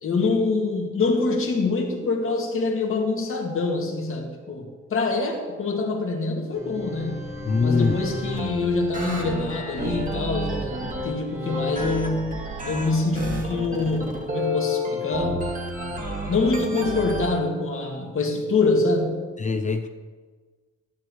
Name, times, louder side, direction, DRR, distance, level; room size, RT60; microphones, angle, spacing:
voice 1, 0.0-7.3 7.6-12.4 12.6-15.4 16.3-19.3, left 3 dB, 45° left, 0 dB, 2.2 m, -25 dB
sound 1, 6.5-17.3, left 1 dB, 25° right, 2.2 m, -30 dB
voice 2, 7.4-8.0 19.4-19.9, left 4 dB, 25° left, 7 dB, 0.6 m, -22 dB
13.0 x 10.5 x 3.2 m, 1.5 s
cardioid pair, 90°, 30 cm